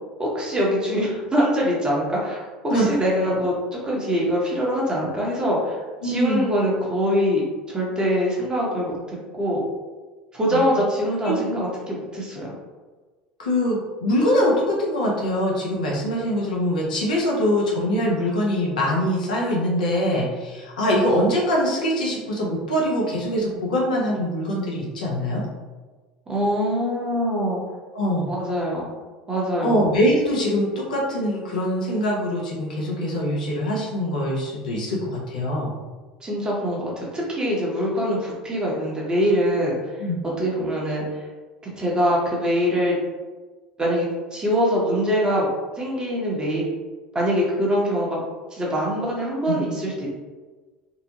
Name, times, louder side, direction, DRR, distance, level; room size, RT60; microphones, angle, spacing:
voice 1, 0.2-7.4 7.7-9.0 9.3-9.6 10.3-12.5 26.3-27.6 28.2-28.8 29.3-29.8 36.2-39.8 40.4-41.2 41.8-43.0 43.8-45.5 45.8-46.7 47.1-48.2 48.5-50.1, equal, 20° right, -4 dB, 0.9 m, -23 dB
voice 2, 6.0-6.5 10.4-10.6 11.2-11.4 13.4-25.4 27.9-28.3 29.6-35.7 40.0-40.2 49.5-49.6, equal, 80° left, -3 dB, 0.6 m, -23 dB
2.7 x 2.0 x 2.9 m, 1.3 s
hypercardioid pair, 75°, 4 cm